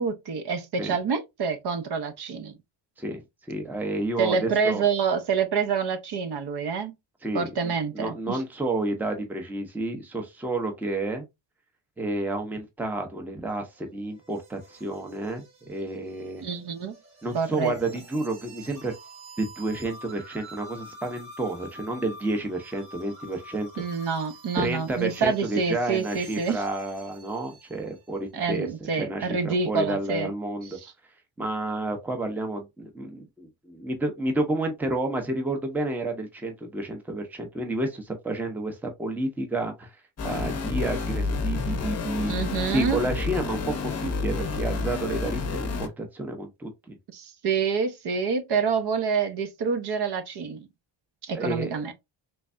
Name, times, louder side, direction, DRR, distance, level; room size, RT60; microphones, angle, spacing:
voice 1, 0.0-2.5 4.2-6.9 7.3-8.4 16.4-16.9 17.3-17.7 23.8-26.6 28.3-30.3 42.3-43.0 47.1-50.7 51.2-51.9, right 5 dB, 55° right, 0.7 m, -27 dB
voice 2, 3.5-4.8 7.2-11.3 12.0-16.4 17.2-18.9 19.4-23.7 24.6-30.8 31.4-40.0 40.2-42.3 42.7-47.0 51.3-51.8, right 2 dB, 5° right, 0.6 m, -30 dB
sound 1, 13.5-28.1, equal, 85° right, 2.1 m, -48 dB
sound 2, 40.2-45.9, left 3 dB, 35° left, 0.7 m, -29 dB
3.4 x 3.2 x 2.5 m
cardioid pair, 155°, 47 cm